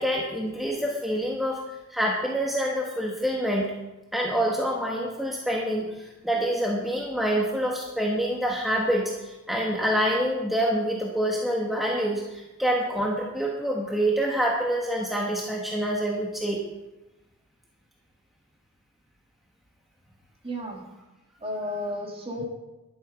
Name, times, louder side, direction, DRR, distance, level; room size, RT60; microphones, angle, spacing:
voice 1, 0.0-1.6 1.9-3.7 4.1-16.6, equal, ahead, -2 dB, 1.3 m, -26 dB
voice 2, 20.4-20.8 21.4-22.4, equal, 25° right, 1 dB, 2.3 m, -32 dB
12.0 x 11.0 x 5.0 m, 1.0 s
head